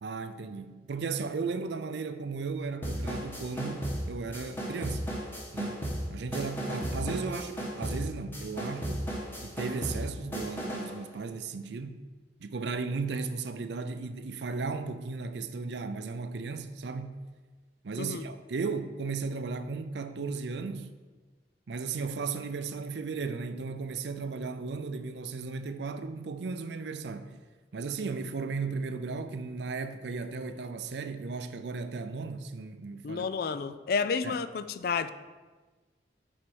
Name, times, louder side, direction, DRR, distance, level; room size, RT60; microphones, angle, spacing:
voice 1, 0.0-5.0 5.5-9.1 9.4-12.0 12.4-17.2 17.8-20.9 21.7-27.4 27.7-33.3 34.2-34.4, right 4 dB, 75° right, 0.5 m, -35 dB
sound 1, 2.8-11.0, equal, 10° left, 1.3 m, -35 dB
voice 2, 33.0-35.1, left 5 dB, 55° left, 0.4 m, -31 dB
6.2 x 4.4 x 6.2 m
head